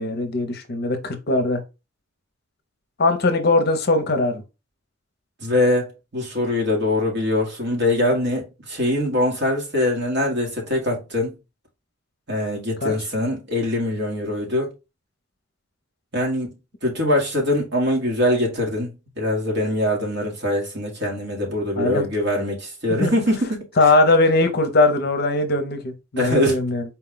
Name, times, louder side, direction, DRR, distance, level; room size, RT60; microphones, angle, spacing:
voice 1, 0.0-1.6 3.0-4.4 12.8-12.9 21.8-22.1 22.9-23.2 23.8-26.8, left 2 dB, 50° left, 0.7 m, -20 dB
voice 2, 5.4-11.4 12.3-14.7 16.1-16.5 16.8-23.6 26.2-26.6, left 1 dB, 55° right, 1.5 m, -23 dB
4.4 x 2.3 x 3.8 m
head